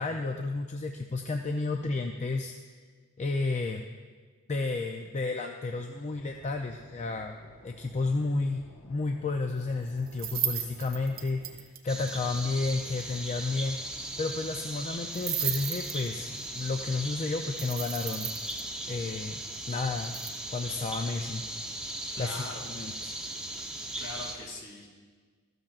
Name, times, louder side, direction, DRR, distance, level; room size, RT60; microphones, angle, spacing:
voice 1, 0.0-2.5 3.2-3.8 4.5-7.3 7.6-13.8 14.2-18.3 18.9-19.4 19.7-20.1 20.5-21.4 22.2-23.1, left 3 dB, 30° left, 4 dB, 0.4 m, -32 dB
sound 1, 6.1-11.6, left 1 dB, 85° left, 1.3 m, -53 dB
sound 2, 10.1-11.8 12.1-12.2 12.4-12.5 12.7-12.8 13.0-13.1 15.1-16.4 17.6-18.6 20.0-20.3, right 9 dB, 40° right, 0.8 m, -34 dB
sound 3, 11.9-24.4, right 1 dB, 5° right, 0.8 m, -38 dB
voice 2, 22.2-22.6 23.6-24.9, left 2 dB, 55° left, -1 dB, 2.3 m, -42 dB
14.0 x 13.0 x 2.4 m, 1.5 s
head